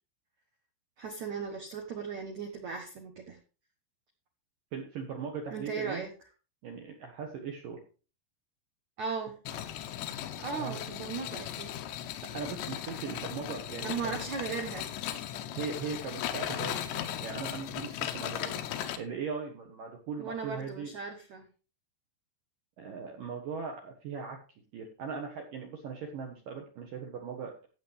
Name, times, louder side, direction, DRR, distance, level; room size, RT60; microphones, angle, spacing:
voice 1, 1.0-3.4 5.5-6.1 9.0-9.3 10.4-11.7 13.8-14.9 20.2-21.4, right 5 dB, 90° right, 3 dB, 1.6 m, -37 dB
voice 2, 4.7-6.0 6.6-7.8 10.5-10.8 12.3-14.2 15.5-20.9 22.8-24.4 24.7-27.7, right 5 dB, 65° right, 2 dB, 2.3 m, -39 dB
sound 1, 9.4-19.0, left 11 dB, 75° left, 2.8 m, -37 dB
15.5 x 7.4 x 3.4 m, 0.35 s
omnidirectional pair, 5.7 m